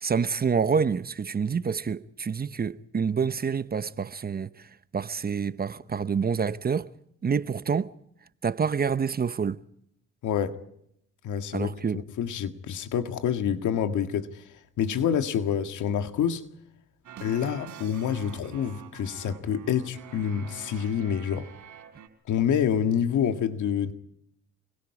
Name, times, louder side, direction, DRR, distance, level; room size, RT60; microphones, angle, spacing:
voice 1, 0.0-4.5 4.9-6.9 7.2-7.9 8.4-9.6 11.5-12.0, right 6 dB, 30° right, 0.8 m, -27 dB
voice 2, 10.2-10.6 11.2-11.8 12.2-14.4 14.8-16.4 17.2-21.5 22.3-23.9, left 8 dB, 75° left, 1.9 m, -27 dB
sound 1, 17.0-22.1, right 9 dB, 75° right, 3.9 m, -46 dB
29.0 x 22.0 x 4.8 m
cardioid pair, 90°, 30 cm